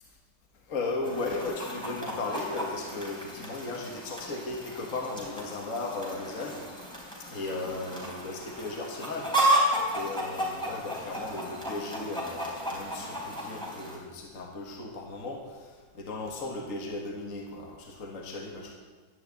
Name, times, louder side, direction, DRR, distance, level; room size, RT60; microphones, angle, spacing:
voice 1, 0.7-6.7 7.3-18.7, left 3 dB, 45° left, 1 dB, 2.0 m, -36 dB
Chicken rooster, 1.0-14.0, right 1 dB, ahead, 3.9 m, -33 dB
12.0 x 10.5 x 8.6 m, 1.4 s
omnidirectional pair, 1.9 m